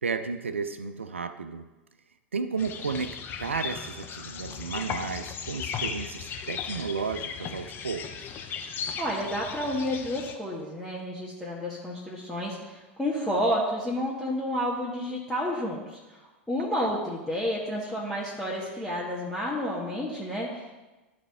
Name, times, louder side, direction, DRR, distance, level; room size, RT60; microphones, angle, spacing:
voice 1, 0.0-1.7 2.3-8.1 16.8-16.9, right 5 dB, 80° right, 10 dB, 0.4 m, -33 dB
sound 1, 2.6-10.3, left 7 dB, 35° left, 0.8 m, -36 dB
voice 2, 9.0-20.7, equal, 5° left, -6 dB, 1.5 m, -30 dB
12.5 x 4.3 x 3.6 m, 1.1 s
figure-of-eight pair, 85°, 7 cm